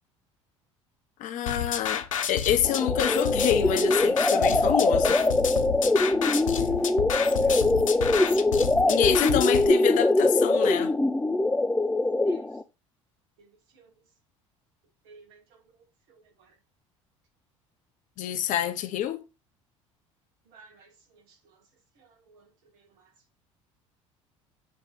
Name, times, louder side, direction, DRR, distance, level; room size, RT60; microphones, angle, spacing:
voice 1, 1.2-5.2 8.8-10.9 18.2-19.2, left 11 dB, 50° left, 0.8 m, -27 dB
sound 1, 1.5-9.7, left 8 dB, 80° left, 0.5 m, -30 dB
sound 2, 2.6-12.6, left 2 dB, 10° left, 0.5 m, -23 dB
voice 2, 6.6-7.0 7.4-7.6 12.3-12.5 13.4-13.9 15.0-15.6 16.1-16.6 20.5-21.6 22.0-23.1, right 4 dB, 60° right, 1.7 m, -57 dB
7.7 x 3.4 x 4.5 m
figure-of-eight pair, 60°, 16 cm